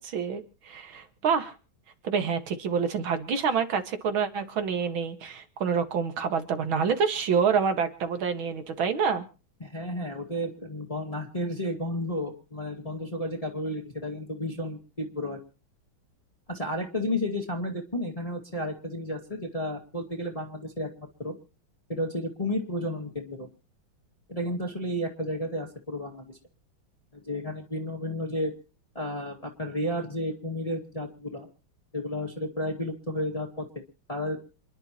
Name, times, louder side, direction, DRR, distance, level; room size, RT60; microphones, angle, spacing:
voice 1, 0.0-1.5 2.0-9.2, right 6 dB, 85° right, 8 dB, 2.5 m, -27 dB
voice 2, 9.6-15.4 16.5-21.4 21.9-23.5 24.3-26.4 27.1-28.5 28.9-31.5 31.9-33.7 34.1-34.4, left 1 dB, 20° left, 1 dB, 2.1 m, -32 dB
28.0 x 11.0 x 3.0 m, 0.35 s
omnidirectional pair, 2.1 m